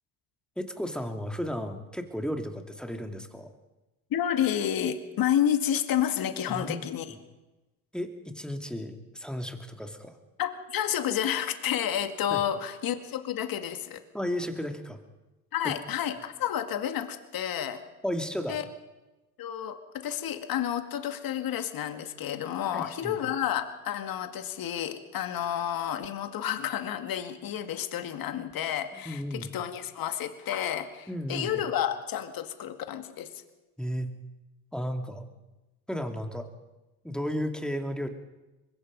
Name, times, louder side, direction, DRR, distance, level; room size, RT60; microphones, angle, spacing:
voice 1, 0.6-3.5 6.5-6.8 7.1-7.2 7.9-10.2 12.3-12.4 14.1-15.0 15.6-15.7 18.0-18.6 22.7-23.2 29.1-29.5 31.1-31.6 33.8-34.1 34.7-35.3 35.9-36.5 37.0-38.1, equal, ahead, 5 dB, 2.7 m, -34 dB
voice 2, 4.1-7.1 10.4-14.0 15.5-17.8 18.5-18.6 19.4-33.3, left 10 dB, 55° left, 8 dB, 2.1 m, -30 dB
24.5 x 21.5 x 5.3 m, 1.1 s
supercardioid pair, 85°, 42 cm